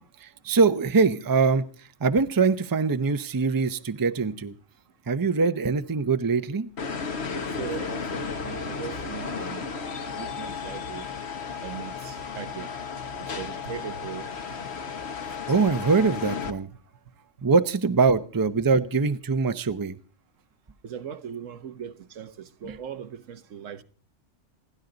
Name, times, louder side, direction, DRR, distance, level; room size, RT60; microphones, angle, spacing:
voice 1, 0.2-4.5 5.1-6.7 9.8-10.6 15.5-16.7 17.4-20.0 22.6-22.8, right 4 dB, 20° right, 0.6 m, -23 dB
sound 1, 6.8-16.5, left 5 dB, 60° left, 1.5 m, -34 dB
voice 2, 7.3-9.7 10.1-11.1 11.6-12.7 13.2-14.6 16.7-16.8 20.8-23.8, right 7 dB, 80° right, 1.4 m, -39 dB
28.5 x 11.0 x 3.9 m
omnidirectional pair, 1.3 m